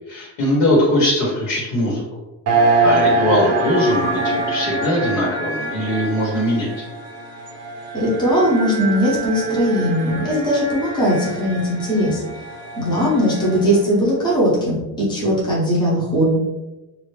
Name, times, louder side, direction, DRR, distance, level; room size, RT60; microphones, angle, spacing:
voice 1, 0.1-2.0 2.8-6.8, left 1 dB, 75° left, -5 dB, 1.4 m, -20 dB
sound 1, 2.5-13.9, right 3 dB, 35° right, 0.5 m, -24 dB
voice 2, 7.9-12.2 12.7-16.3, equal, 10° left, -7 dB, 0.9 m, -19 dB
2.8 x 2.5 x 3.3 m, 1.1 s
cardioid pair, 165°, 44 cm